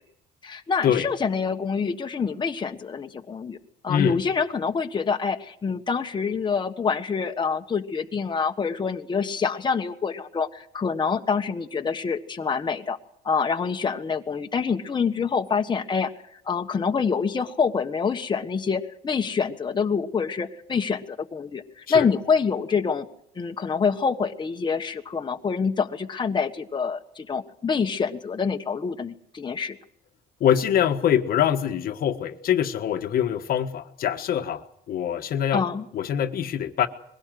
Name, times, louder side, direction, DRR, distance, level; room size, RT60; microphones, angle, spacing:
voice 1, 0.4-3.6 3.8-13.0 13.2-16.1 16.5-23.1 23.4-29.8 35.5-35.8, left 5 dB, 25° left, 4 dB, 1.4 m, -26 dB
voice 2, 3.9-4.2 21.9-22.1 30.4-35.6 35.9-36.9, left 9 dB, 60° left, 7 dB, 1.5 m, -24 dB
22.0 x 17.5 x 7.7 m, 0.72 s
cardioid pair, 110°, 17 cm